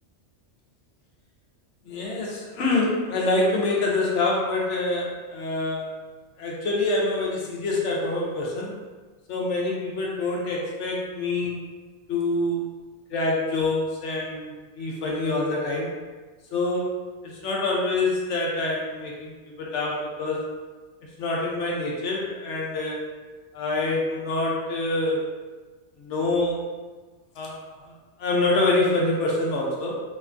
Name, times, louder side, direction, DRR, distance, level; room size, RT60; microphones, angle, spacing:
voice 1, 1.8-5.9 6.4-8.8 9.3-11.6 12.1-12.7 13.1-16.0 16.5-17.0 17.2-20.5 21.2-23.0 23.5-25.3 26.0-26.6 27.4-27.9 28.2-30.0, left 2 dB, 80° left, -3 dB, 1.0 m, -26 dB
2.9 x 2.3 x 2.4 m, 1.3 s
omnidirectional pair, 1.2 m